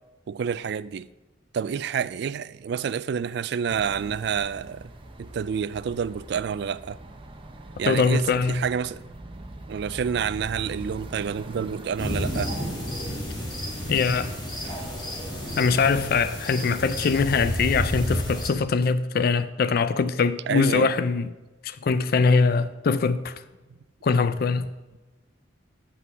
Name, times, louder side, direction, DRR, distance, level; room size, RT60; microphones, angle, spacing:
voice 1, 0.3-1.1 1.5-4.9 5.2-7.0 7.8-9.0 9.7-12.5 20.5-20.9, right 7 dB, 60° right, 0.3 m, -28 dB
sound 1, 3.7-16.3, right 1 dB, 30° right, 0.8 m, -43 dB
voice 2, 7.9-8.6 13.9-14.3 15.6-21.3 21.6-23.3 24.0-24.7, left 4 dB, 55° left, 0.4 m, -22 dB
sound 2, 12.0-18.5, equal, 25° left, 2.2 m, -31 dB
7.7 x 5.9 x 6.9 m
head